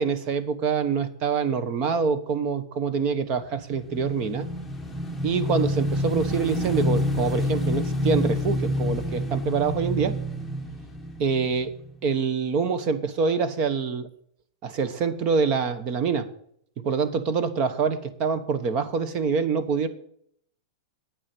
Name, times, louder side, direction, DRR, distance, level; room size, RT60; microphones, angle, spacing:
voice 1, 0.0-4.5 5.2-10.1 11.2-11.7 12.0-14.1 14.6-16.3 16.8-19.9, right 5 dB, 35° right, 13 dB, 1.1 m, -25 dB
Motorcycle / Engine, 3.5-12.0, left 1 dB, ahead, 1.2 m, -28 dB
9.1 x 7.3 x 8.4 m, 0.66 s
supercardioid pair, 160°, 3 cm